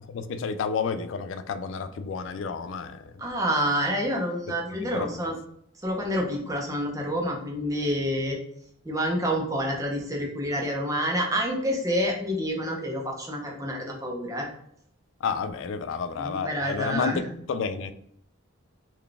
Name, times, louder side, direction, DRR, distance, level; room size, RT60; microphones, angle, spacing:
voice 1, 0.1-3.2 4.7-5.3 15.2-17.2 17.5-17.9, left 5 dB, 65° left, 11 dB, 0.3 m, -31 dB
voice 2, 3.2-5.3 5.8-8.4 8.8-14.5 16.1-17.3, equal, 15° right, 0 dB, 0.6 m, -28 dB
3.8 x 2.3 x 3.3 m, 0.68 s
head